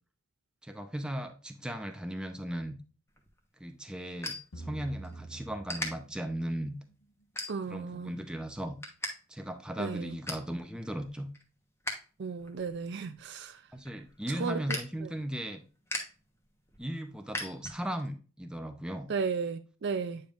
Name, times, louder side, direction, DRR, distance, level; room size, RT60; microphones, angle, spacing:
voice 1, 0.6-2.8 3.6-6.8 7.7-8.8 9.3-11.3 13.7-15.6 16.8-19.1, right 1 dB, 5° right, 0.6 m, -37 dB
sound 1, 3.1-5.2 5.6-5.9 6.5-6.7 7.3-7.9 8.3-9.1 9.4-9.5 9.9-10.5 11.0-12.1 12.4-18.1, left 1 dB, 10° left, 1.1 m, -40 dB
sound 2, 4.5-6.7, right 2 dB, 85° left, 1.0 m, -46 dB
voice 2, 7.5-8.1 9.8-10.2 12.2-13.6 14.3-14.8 19.1-20.2, right 5 dB, 50° right, 0.4 m, -34 dB
9.1 x 5.3 x 2.5 m
head